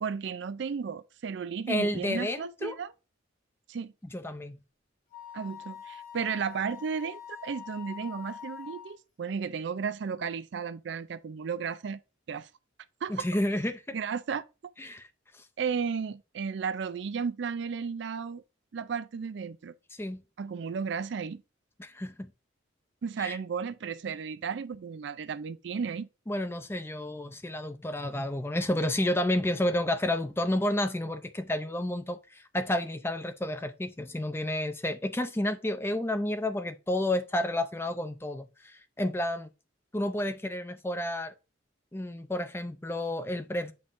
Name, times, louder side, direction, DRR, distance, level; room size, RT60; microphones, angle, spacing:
voice 1, 0.0-2.9 3.7-3.9 5.3-12.0 12.3-12.5 13.0-13.3 13.9-14.4 15.6-18.4 18.7-19.7 20.4-21.4 23.0-26.1, right 6 dB, 60° right, 0.4 m, -34 dB
voice 2, 1.7-2.8 4.0-4.6 13.1-14.0 14.8-15.1 15.3-15.5 20.0-20.2 21.8-22.3 23.2-23.4 26.3-39.5 39.9-41.3 41.9-43.7, left 1 dB, 10° left, 0.5 m, -31 dB
Wind instrument woodwind instrument, 5.1-9.0, left 9 dB, 40° left, 1.6 m, -45 dB
8.4 x 5.4 x 2.5 m
head